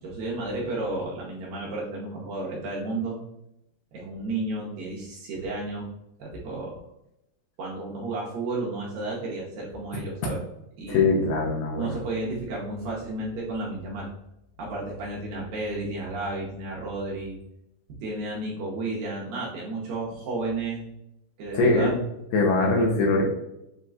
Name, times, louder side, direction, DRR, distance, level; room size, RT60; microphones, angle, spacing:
voice 1, 0.0-3.2 3.9-5.9 6.2-6.8 7.6-10.4 10.8-11.1 11.8-14.1 14.6-17.4 18.0-20.8 21.4-21.9, right 2 dB, 70° right, -4 dB, 2.2 m, -32 dB
voice 2, 10.9-11.9 21.5-22.0 22.3-23.2, left 3 dB, 80° left, -1 dB, 2.4 m, -22 dB
7.6 x 2.9 x 2.4 m, 0.83 s
omnidirectional pair, 4.9 m